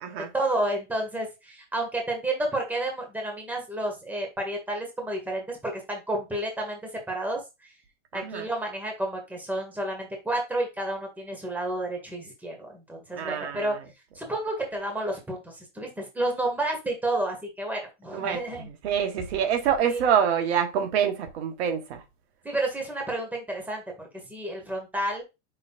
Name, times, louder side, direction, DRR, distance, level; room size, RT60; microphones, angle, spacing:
voice 1, 0.3-6.8 7.1-7.4 8.1-13.8 14.2-18.7 19.9-20.0 22.5-25.2, right 1 dB, 5° right, 1.7 m, -30 dB
voice 2, 8.1-8.5 13.1-13.7 18.1-18.4 18.8-22.0, right 8 dB, 60° right, 1.2 m, -26 dB
5.6 x 3.9 x 2.4 m
hypercardioid pair, 125°, 36 cm